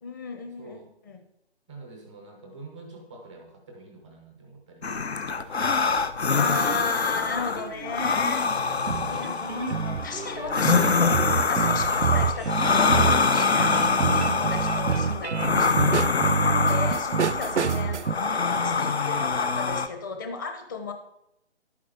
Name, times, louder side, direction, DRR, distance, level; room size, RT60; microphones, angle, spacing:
voice 1, 0.0-1.2 6.3-16.2 16.5-18.0 18.6-20.9, left 4 dB, 20° left, 5 dB, 0.8 m, -35 dB
voice 2, 0.6-0.9 1.7-5.7 14.3-14.5, right 2 dB, 5° right, 2 dB, 0.4 m, -47 dB
sound 1, 4.8-19.9, left 4 dB, 70° left, 0.9 m, -25 dB
sound 2, 6.4-7.0 7.6-18.2, right 6 dB, 90° right, 0.6 m, -28 dB
11.0 x 9.2 x 3.6 m, 0.82 s
figure-of-eight pair, 140°, 34 cm